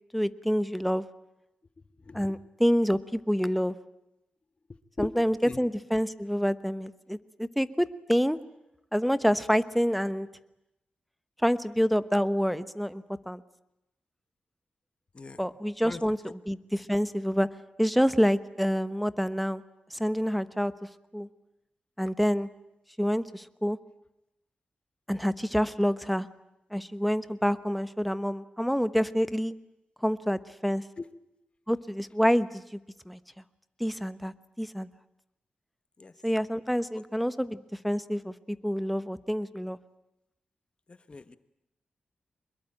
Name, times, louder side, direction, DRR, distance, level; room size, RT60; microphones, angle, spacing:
voice 1, 0.1-1.0 2.1-3.7 5.0-8.4 8.9-10.3 11.4-13.4 15.4-17.5 17.8-19.6 19.9-20.7 21.1-21.3 22.0-22.5 23.0-23.8 25.1-26.3 26.7-29.5 30.0-30.8 31.7-32.6 33.1-33.2 33.8-34.9 36.2-39.8, equal, ahead, 13 dB, 1.1 m, -27 dB
voice 2, 15.8-16.3 31.0-31.1 36.0-36.1 41.1-41.4, left 3 dB, 35° left, 12 dB, 1.2 m, -39 dB
24.0 x 21.5 x 8.9 m, 0.88 s
cardioid pair, 75°, 3 cm